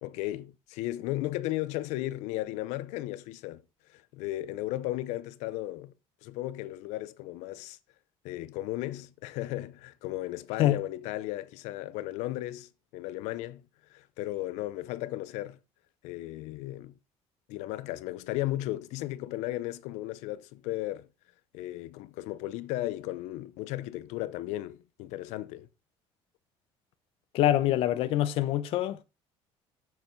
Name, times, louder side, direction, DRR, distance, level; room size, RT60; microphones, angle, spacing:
voice 1, 0.0-3.6 3.9-5.9 6.2-7.8 8.2-13.6 13.9-15.6 16.0-17.0 17.5-21.1 21.5-25.7, left 16 dB, 90° left, 0.7 m, -35 dB
voice 2, 27.3-29.0, left 13 dB, 55° left, 0.9 m, -25 dB
7.8 x 7.2 x 4.6 m
cardioid pair, 180°, 11 cm